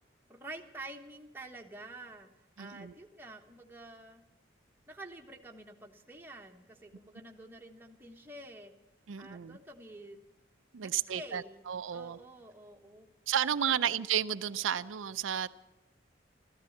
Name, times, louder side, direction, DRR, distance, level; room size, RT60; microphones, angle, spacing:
voice 1, 0.3-2.3 2.6-4.2 4.9-8.7 9.2-10.2 10.8-11.6 11.9-13.1 13.7-14.0, right 2 dB, 10° right, 1.3 m, -48 dB
voice 2, 2.6-2.9 9.1-9.6 10.7-12.2 13.3-15.5, right 9 dB, 85° right, 0.5 m, -32 dB
14.0 x 13.5 x 7.2 m
head